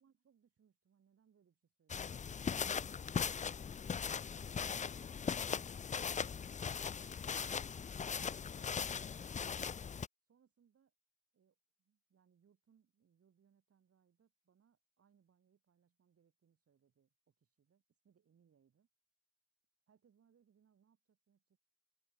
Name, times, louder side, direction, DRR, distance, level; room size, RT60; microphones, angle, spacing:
voice 1, 0.0-3.3 6.6-8.0 10.2-10.9 11.3-18.9 19.9-21.6, right 7 dB, 50° right, 6.4 m, -74 dB
sound 1, 1.9-10.1, left 6 dB, 25° left, 0.5 m, -39 dB
cardioid pair, 90°, 30 cm